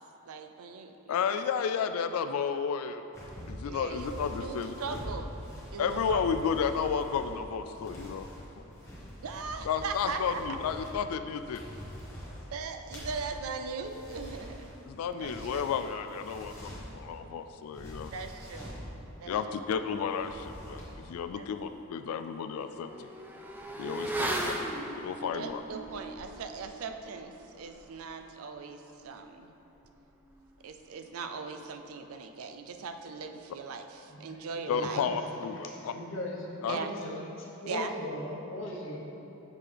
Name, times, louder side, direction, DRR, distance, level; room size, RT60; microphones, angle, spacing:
voice 1, 0.2-1.2 3.6-5.3 5.7-6.4 9.2-10.4 12.5-14.7 15.2-15.7 18.1-18.8 19.2-19.6 21.3-21.5 24.2-24.3 25.3-29.5 30.6-35.0 36.7-37.2 37.7-37.9, right 4 dB, 75° right, 6 dB, 0.4 m, -39 dB
voice 2, 1.1-3.0 3.5-4.7 5.8-8.3 8.6-8.7 9.7-11.6 14.9-18.1 19.2-23.1 23.8-24.5 25.0-25.6 34.7-35.9 36.6-36.8, left 6 dB, 80° left, 9 dB, 0.3 m, -32 dB
sound 1, 3.1-17.1 17.6-18.9 20.0-21.1 21.4-21.7, equal, 15° left, 1.2 m, -44 dB
Motorcycle / Accelerating revving vroom, 21.1-21.2 21.5-31.6 31.8-31.9, right 1 dB, 10° right, 0.3 m, -40 dB
voice 3, 34.1-35.2 35.8-39.0, left 1 dB, 60° left, -2 dB, 1.0 m, -39 dB
7.5 x 6.1 x 3.4 m, 3.0 s
head